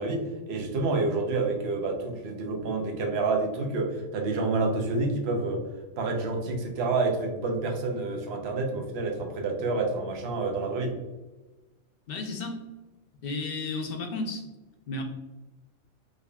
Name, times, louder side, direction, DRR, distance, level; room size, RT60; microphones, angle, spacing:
voice 1, 0.0-5.6 6.0-10.9, right 3 dB, 60° right, 2 dB, 0.9 m, -28 dB
voice 2, 12.1-12.6 13.2-14.4 14.9-15.0, left 3 dB, 60° left, 3 dB, 0.7 m, -33 dB
3.7 x 3.4 x 2.2 m, 1.1 s
omnidirectional pair, 1.3 m